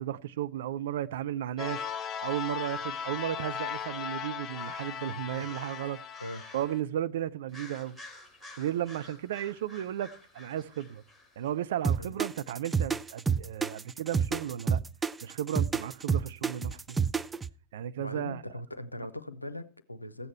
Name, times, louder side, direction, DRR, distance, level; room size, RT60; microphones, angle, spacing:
voice 1, 0.0-1.8 2.2-6.0 6.5-8.0 8.6-11.0 11.4-14.8 15.2-17.0 17.7-18.4, right 11 dB, 60° right, 0.6 m, -34 dB
sound 1, 1.6-6.8, left 8 dB, 30° left, 0.8 m, -37 dB
sound 2, 4.5-6.8 7.5-11.5, left 2 dB, 5° left, 3.3 m, -51 dB
sound 3, 11.8-17.5, right 6 dB, 15° right, 0.4 m, -28 dB
voice 2, 18.0-20.3, left 1 dB, 85° left, 0.7 m, -40 dB
14.5 x 8.5 x 4.4 m
figure-of-eight pair, 90°, 0 cm